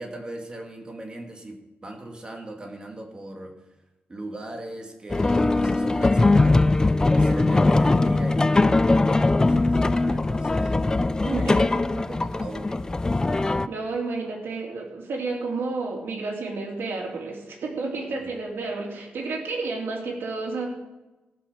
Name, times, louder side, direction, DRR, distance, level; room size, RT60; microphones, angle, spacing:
voice 1, 0.0-3.5 4.1-6.7 7.1-10.8 11.4-11.7 11.9-13.0 18.1-18.3, right 1 dB, 25° right, 2 dB, 2.0 m, -39 dB
sound 1, 5.1-13.7, left 2 dB, 15° left, 0.3 m, -21 dB
voice 2, 11.2-11.6 13.4-20.7, right 3 dB, 65° right, -1 dB, 3.1 m, -31 dB
15.5 x 6.3 x 6.5 m, 1.0 s
wide cardioid pair, 135°, 4 cm